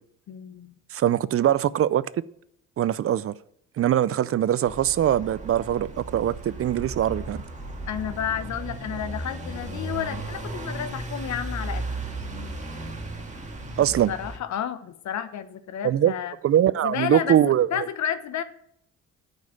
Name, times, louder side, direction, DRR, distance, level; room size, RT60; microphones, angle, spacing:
voice 1, 0.3-0.8 7.9-11.9 14.1-16.3 16.8-18.4, left 9 dB, 65° left, 0.9 m, -31 dB
voice 2, 0.9-2.0 2.8-3.3 3.8-7.4 13.8-14.1 15.8-16.1 16.4-17.9, right 11 dB, 50° right, 0.5 m, -22 dB
sound 1, 4.6-14.4, right 2 dB, 25° right, 1.7 m, -35 dB
9.3 x 5.4 x 7.4 m
cardioid pair, 90°, 30 cm